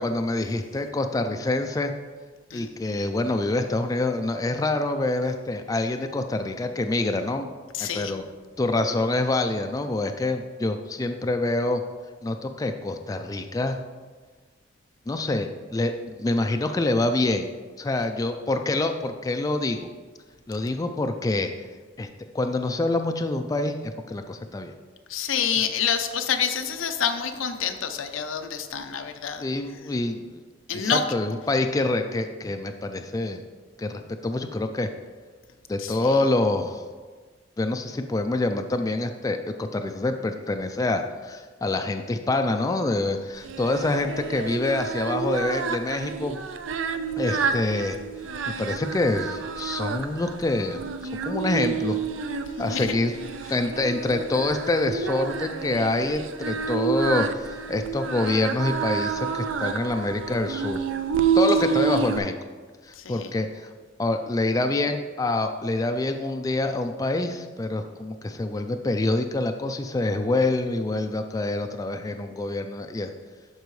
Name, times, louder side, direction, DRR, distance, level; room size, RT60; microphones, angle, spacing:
voice 1, 0.0-1.9 2.5-7.5 7.8-8.2 8.6-11.8 12.2-13.8 15.1-17.5 17.8-19.9 20.5-21.5 22.0-22.1 22.3-24.7 29.4-30.4 30.7-33.4 33.8-34.9 35.7-36.8 37.6-46.4 47.2-48.0 48.5-50.8 51.3-52.0 52.6-53.2 53.5-60.8 61.3-62.3 62.8-63.7 64.0-73.1, left 2 dB, 20° left, 6 dB, 0.3 m, -26 dB
voice 2, 2.5-3.0 7.7-8.1 25.1-29.4 30.7-31.0 35.8-36.1 47.3-47.5 52.6-53.0 63.0-63.3, left 7 dB, 90° left, 7 dB, 0.6 m, -28 dB
Singing, 43.4-62.2, right 6 dB, 75° right, 0.5 m, -29 dB
12.0 x 4.6 x 3.2 m, 1.4 s
head